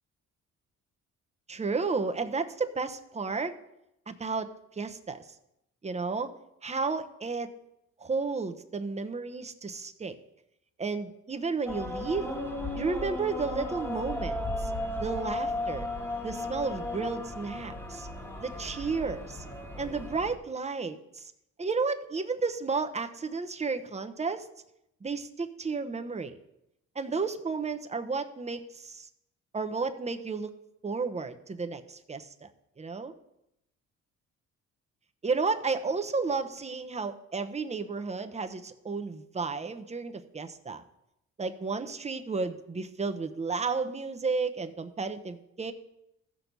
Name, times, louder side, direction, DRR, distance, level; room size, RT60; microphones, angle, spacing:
voice 1, 1.5-3.5 4.1-5.3 5.8-6.3 6.6-7.5 8.0-10.1 10.8-12.3 12.7-14.7 15.0-15.9 16.2-18.1 18.4-19.4 19.8-21.3 21.6-24.5 25.0-26.4 26.9-29.1 29.5-30.5 30.8-32.5 32.8-33.1 35.2-40.8 41.4-45.7, right 4 dB, 20° right, 8 dB, 0.9 m, -32 dB
sound 1, 11.7-20.4, left 1 dB, 5° left, 1.6 m, -35 dB
14.5 x 6.3 x 5.3 m, 0.84 s
cardioid pair, 90°, 30 cm